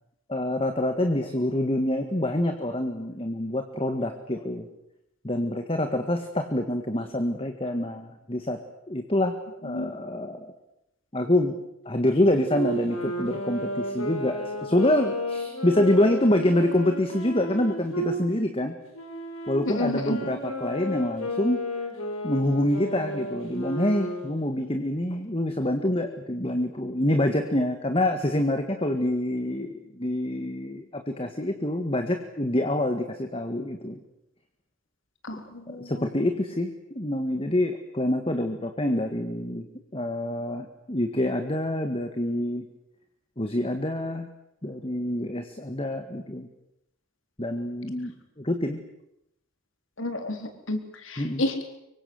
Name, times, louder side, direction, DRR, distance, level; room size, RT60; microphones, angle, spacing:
voice 1, 0.3-4.7 5.2-8.6 8.9-9.4 9.6-10.5 11.1-11.6 11.9-18.7 19.5-21.6 22.2-34.0 35.8-39.7 39.9-42.6 43.4-44.3 44.6-46.5 47.4-48.8 51.2-51.4, left 1 dB, 25° left, 6 dB, 1.8 m, -26 dB
Wind instrument woodwind instrument, 12.4-18.2 18.9-24.3, equal, 90° left, 6.3 m, -33 dB
voice 2, 19.7-20.2 35.2-36.0 50.0-50.8 51.1-51.5, left 1 dB, 65° left, 6 dB, 3.9 m, -30 dB
25.5 x 23.5 x 7.9 m, 0.83 s
head